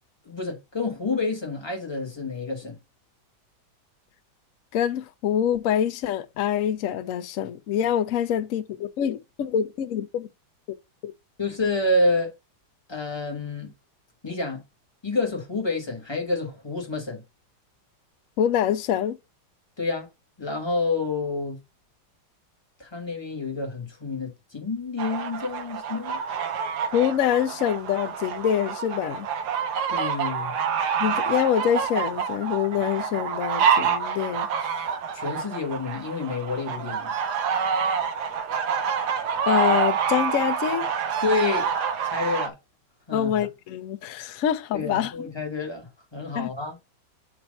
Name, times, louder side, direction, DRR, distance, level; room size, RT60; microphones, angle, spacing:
voice 1, 0.3-2.8 11.4-12.3 12.9-13.7 14.2-14.6 15.0-17.2 19.8-20.1 20.4-21.6 22.8-26.2 29.9-30.6 35.1-37.1 41.2-41.7 42.0-42.6 43.1-43.5 44.7-46.8, left 3 dB, 15° left, 1.4 m, -28 dB
voice 2, 4.7-10.3 11.0-11.1 18.4-19.2 26.9-29.3 31.0-34.5 39.5-40.9 43.1-45.1 46.4-46.5, left 9 dB, 60° left, 0.9 m, -25 dB
sound 1, 25.0-42.5, right 6 dB, 65° right, 1.1 m, -27 dB
7.9 x 2.9 x 5.2 m
omnidirectional pair, 2.1 m